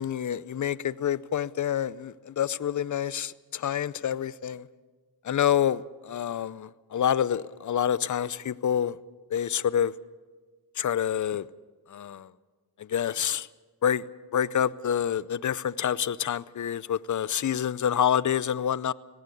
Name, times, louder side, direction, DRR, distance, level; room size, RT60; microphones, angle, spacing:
voice 1, 0.0-4.7 5.2-9.0 9.3-9.9 10.8-11.5 11.9-12.3 12.8-13.5 13.8-14.0 14.3-18.9, left 9 dB, 50° left, 20 dB, 0.6 m, -27 dB
19.0 x 17.5 x 8.5 m, 1.4 s
cardioid pair, 55°, 39 cm